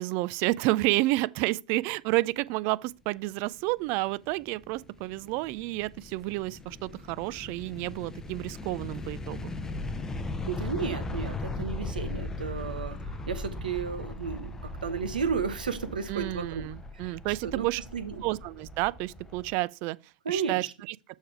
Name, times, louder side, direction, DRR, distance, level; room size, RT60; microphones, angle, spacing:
voice 1, 0.0-9.5 16.1-17.8 18.2-20.0 20.3-20.7, right 20 dB, 45° right, 0.3 m, -30 dB
sound 1, 4.0-19.5, left 2 dB, 10° left, 0.6 m, -38 dB
voice 2, 10.5-16.6 17.0-17.7 17.9-18.2 20.2-20.7, right 6 dB, 80° right, 1.1 m, -33 dB
6.4 x 4.6 x 4.6 m
hypercardioid pair, 105°, 5 cm